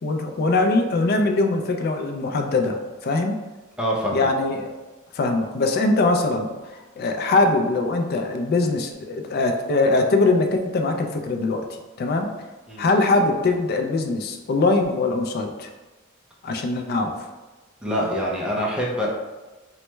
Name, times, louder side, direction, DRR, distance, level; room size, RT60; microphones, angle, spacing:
voice 1, 0.0-3.4 4.1-4.8 5.1-6.5 7.0-11.7 12.0-12.3 12.8-15.7 16.4-17.3, left 3 dB, 50° left, 4 dB, 0.4 m, -22 dB
voice 2, 3.8-4.3 12.7-12.8 17.8-19.1, equal, 5° right, -4 dB, 0.5 m, -25 dB
3.2 x 2.2 x 3.0 m, 1.2 s
head